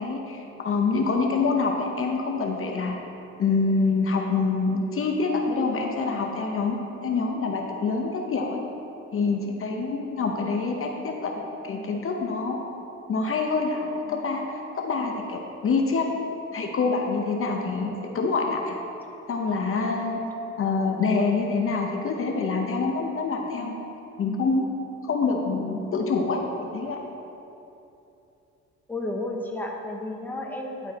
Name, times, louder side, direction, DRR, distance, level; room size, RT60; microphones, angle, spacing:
voice 1, 0.0-3.0 3.4-8.6 9.1-12.6 13.1-16.1 16.5-18.8 19.3-20.2 20.6-23.7 24.2-24.6 25.0-26.4 26.7-27.0, left 4 dB, 45° left, 2 dB, 0.8 m, -26 dB
voice 2, 28.9-30.9, left 2 dB, 5° left, 1 dB, 0.9 m, -32 dB
10.5 x 4.6 x 4.1 m, 2.9 s
cardioid pair, 90°, 30 cm